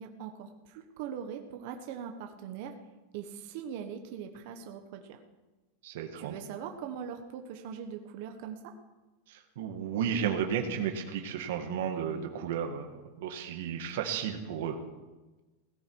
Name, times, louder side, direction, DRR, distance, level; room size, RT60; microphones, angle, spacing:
voice 1, 0.0-2.7 3.1-5.2 6.1-8.7, right 8 dB, 45° right, 5 dB, 1.2 m, -41 dB
voice 2, 5.8-6.4 9.3-12.9 13.2-14.8, right 8 dB, 60° right, 4 dB, 1.7 m, -33 dB
17.0 x 14.5 x 4.7 m, 1.2 s
supercardioid pair, 175°, 0 cm